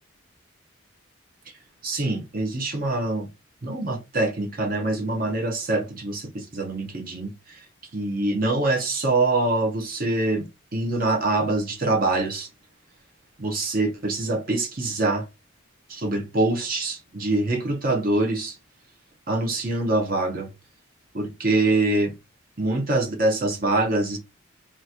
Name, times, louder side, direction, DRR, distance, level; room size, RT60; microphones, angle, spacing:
voice 1, 1.8-3.3 3.6-7.7 7.9-12.5 13.4-15.3 15.9-18.6 19.3-20.5 21.1-22.1 22.6-24.2, right 2 dB, 45° right, 0.9 m, -24 dB
3.1 x 2.5 x 4.2 m
head